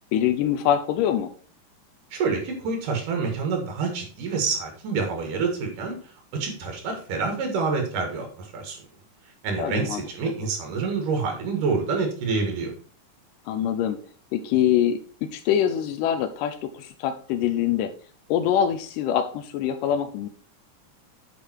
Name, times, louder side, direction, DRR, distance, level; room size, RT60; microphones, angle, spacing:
voice 1, 0.1-1.3 9.6-10.0 13.5-14.0 14.3-17.9 18.3-20.3, left 10 dB, 85° left, 7 dB, 2.3 m, -24 dB
voice 2, 2.1-6.0 6.3-8.8 9.4-12.7, right 4 dB, 75° right, 3 dB, 3.5 m, -27 dB
8.6 x 5.1 x 4.4 m, 0.43 s
omnidirectional pair, 3.7 m